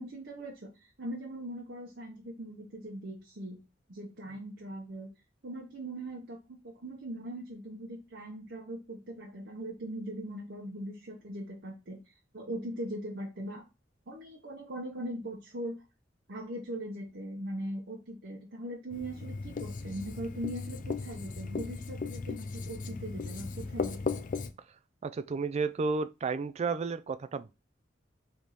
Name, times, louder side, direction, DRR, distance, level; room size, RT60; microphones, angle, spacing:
voice 1, 0.0-3.6 3.9-5.1 5.4-13.7 14.1-15.8 16.3-24.0, right 1 dB, 60° right, 0.9 m, -40 dB
Writing, 18.9-24.5, left 4 dB, 45° left, 0.4 m, -37 dB
voice 2, 25.0-27.5, right 4 dB, 35° right, 0.3 m, -32 dB
3.5 x 3.0 x 4.0 m
head